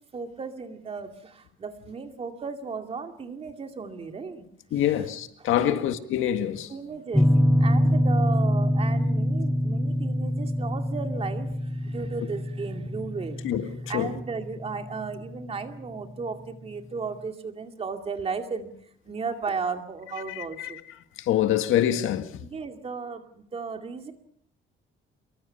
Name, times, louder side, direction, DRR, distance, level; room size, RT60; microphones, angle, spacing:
voice 1, 0.1-4.5 4.7-5.1 5.4-5.8 6.7-7.3 7.6-18.7 19.1-20.8 22.4-24.1, right 5 dB, 30° right, 2.4 m, -35 dB
voice 2, 4.7-6.7 13.4-14.1 20.6-20.7 21.2-22.4, left 11 dB, 80° left, 1.8 m, -25 dB
sound 1, 7.1-15.9, equal, ahead, 0.9 m, -25 dB
26.0 x 23.0 x 5.8 m
cardioid pair, 165°, 21 cm